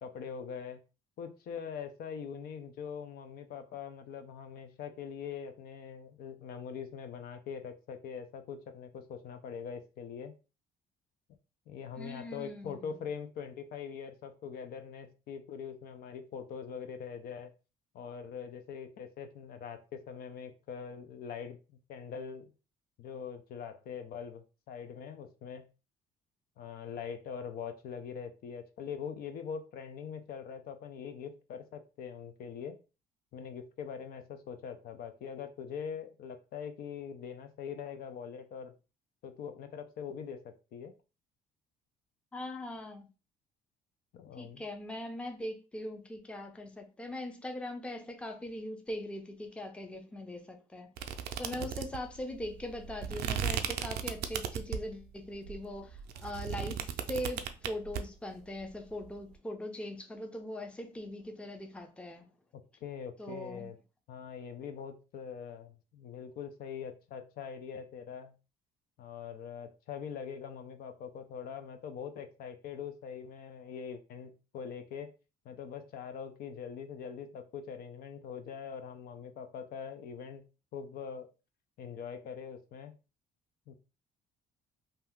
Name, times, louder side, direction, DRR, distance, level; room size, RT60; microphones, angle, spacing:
voice 1, 0.0-0.8 1.2-10.3 11.7-17.5 17.9-22.5 23.0-25.7 26.6-32.8 33.3-38.7 39.2-40.9 44.1-44.6 51.5-51.7 62.5-63.8 64.1-68.3 69.0-75.1 75.5-80.4 80.7-81.3 81.8-83.0 83.7-83.8, left 7 dB, 65° left, 0.5 m, -43 dB
voice 2, 12.0-13.1 42.3-43.1 44.4-50.9 51.4-62.3 63.2-63.7, left 1 dB, 5° left, 0.5 m, -41 dB
sound 1, 51.0-55.0 55.4-58.0, right 8 dB, 75° right, 0.4 m, -36 dB
2.7 x 2.3 x 3.5 m
cardioid pair, 110°, 17 cm